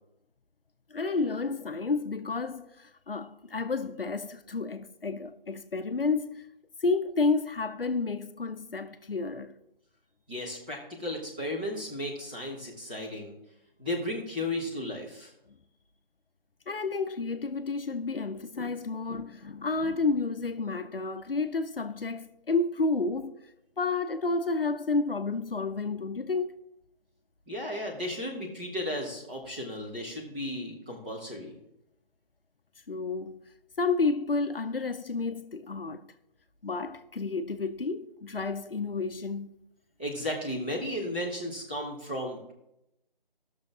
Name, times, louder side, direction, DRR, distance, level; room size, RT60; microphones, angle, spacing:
voice 1, 0.9-6.5 6.8-9.5 16.7-23.3 23.8-26.6 32.9-33.4 33.8-36.1 36.6-39.5, left 3 dB, 75° left, 0.7 m, -30 dB
voice 2, 10.3-13.3 13.8-15.3 27.5-31.6 40.0-42.5, left 1 dB, 10° right, 1.0 m, -34 dB
15.5 x 6.5 x 3.7 m
figure-of-eight pair, 160°, 29 cm